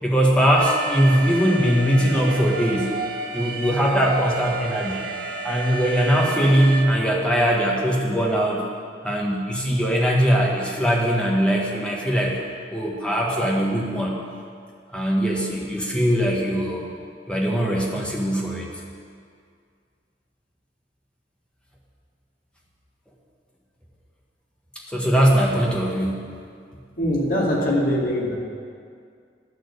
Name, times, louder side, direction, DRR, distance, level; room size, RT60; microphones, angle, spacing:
voice 1, 0.0-2.9 3.3-5.1 5.4-8.6 9.0-12.4 12.7-14.1 14.9-16.8 17.3-18.7 24.9-26.2, equal, 5° left, -3 dB, 1.6 m, -21 dB
Alarm, 0.6-6.8, right 3 dB, 50° right, 1.3 m, -31 dB
voice 2, 27.0-28.4, equal, 55° left, -4 dB, 2.4 m, -22 dB
10.5 x 6.8 x 8.1 m, 2.2 s
head